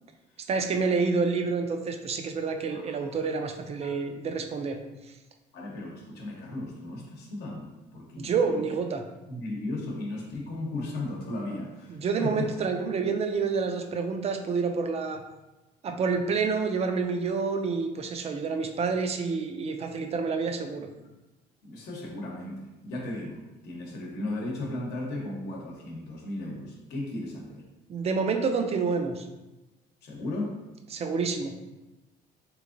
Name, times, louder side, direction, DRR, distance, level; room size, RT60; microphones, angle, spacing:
voice 1, 0.5-4.8 8.2-9.0 11.9-15.2 15.8-20.9 27.9-29.2 30.9-31.5, right 4 dB, 40° right, 5 dB, 0.4 m, -28 dB
voice 2, 2.7-3.3 3.8-3.9 5.5-8.6 9.3-12.5 21.6-27.6 30.0-30.5, left 2 dB, 80° left, 0 dB, 0.8 m, -36 dB
3.4 x 3.0 x 2.5 m, 1.0 s
cardioid pair, 110°, 17 cm